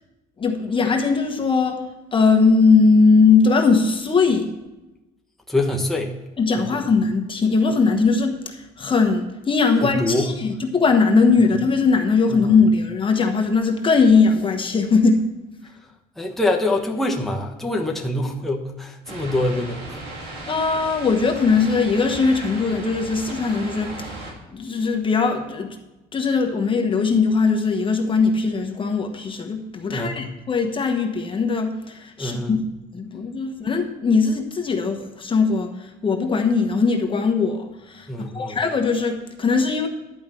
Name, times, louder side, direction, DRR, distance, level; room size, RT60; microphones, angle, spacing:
voice 1, 0.4-1.8 2.1-4.5 6.4-15.3 20.5-25.8 26.1-32.6 32.9-39.9, left 4 dB, 30° left, 4 dB, 1.2 m, -20 dB
voice 2, 5.5-6.1 6.6-6.7 9.8-10.3 12.3-12.4 16.2-20.0 29.9-30.3 32.2-32.5 38.1-38.6, left 1 dB, ahead, 0 dB, 1.2 m, -25 dB
sound 1, 19.1-24.3, right 2 dB, 80° right, 2.8 m, -36 dB
11.0 x 5.2 x 7.6 m, 1.0 s
cardioid pair, 110°, 17 cm